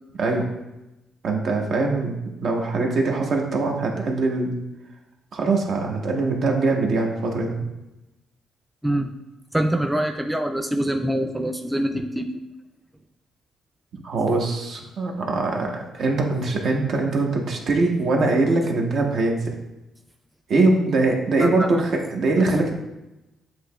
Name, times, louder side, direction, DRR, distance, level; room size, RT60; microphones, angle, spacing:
voice 1, 1.2-4.6 5.3-7.6 14.0-19.5 20.5-22.7, right 3 dB, 65° right, 1 dB, 0.9 m, -22 dB
voice 2, 9.5-12.3 21.4-21.8, right 1 dB, 5° right, 5 dB, 0.3 m, -24 dB
7.9 x 2.9 x 2.2 m, 0.97 s
cardioid pair, 90°, 0 cm